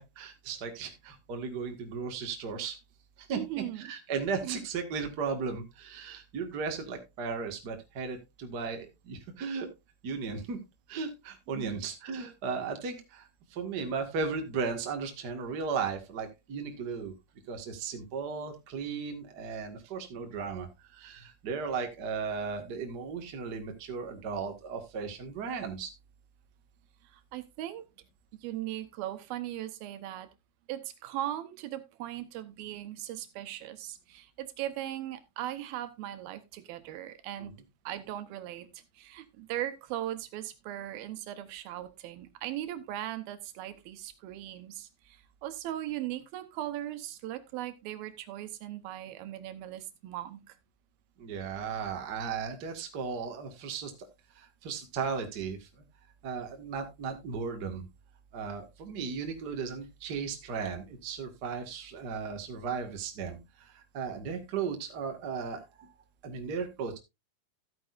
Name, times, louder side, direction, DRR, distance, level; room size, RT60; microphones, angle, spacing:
voice 1, 0.0-2.8 3.2-3.4 3.8-9.7 10.0-10.6 10.9-17.1 17.5-25.9 37.4-37.5 51.2-54.1 54.3-55.7 56.2-57.8 58.3-65.9 66.2-67.0, right 5 dB, 40° right, 4 dB, 1.6 m, -36 dB
voice 2, 3.3-3.9 4.4-4.6 11.5-11.9 19.8-19.9 27.0-27.9 28.4-30.3 30.7-37.5 37.8-50.6, right 13 dB, 90° right, 11 dB, 2.9 m, -39 dB
14.0 x 8.8 x 2.5 m, 0.23 s
omnidirectional pair, 4.2 m